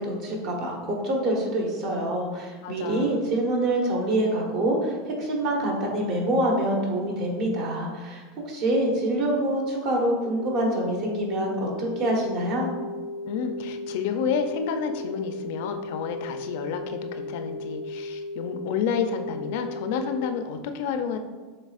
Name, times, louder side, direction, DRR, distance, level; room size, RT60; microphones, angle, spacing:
voice 1, 0.0-12.7, right 1 dB, 50° right, 0 dB, 1.2 m, -26 dB
voice 2, 2.6-3.2 13.3-21.2, left 6 dB, 65° left, 7 dB, 0.4 m, -30 dB
sound 1, 10.2-20.2, left 2 dB, 10° right, 0.9 m, -36 dB
6.6 x 3.2 x 2.4 m, 1.4 s
supercardioid pair, 130°, 0 cm